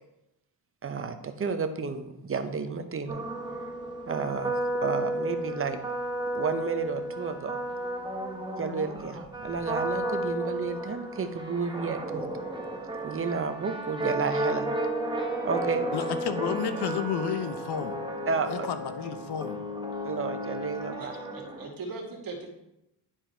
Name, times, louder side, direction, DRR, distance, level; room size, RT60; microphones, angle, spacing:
voice 1, 0.8-3.2 4.1-4.5 4.8-5.8 6.3-7.6 8.6-12.3 13.0-14.7 15.4-15.9 18.3-18.7 20.0-21.1, right 5 dB, 30° right, 8 dB, 0.8 m, -31 dB
sound 1, 3.1-21.7, right 1 dB, 10° right, 1.3 m, -33 dB
voice 2, 15.9-17.9 18.5-19.6, left 8 dB, 70° left, 10 dB, 0.9 m, -31 dB
voice 3, 21.0-22.5, right 3 dB, 55° right, 1 dB, 1.9 m, -40 dB
10.5 x 4.5 x 4.5 m, 0.88 s
cardioid pair, 110°, 41 cm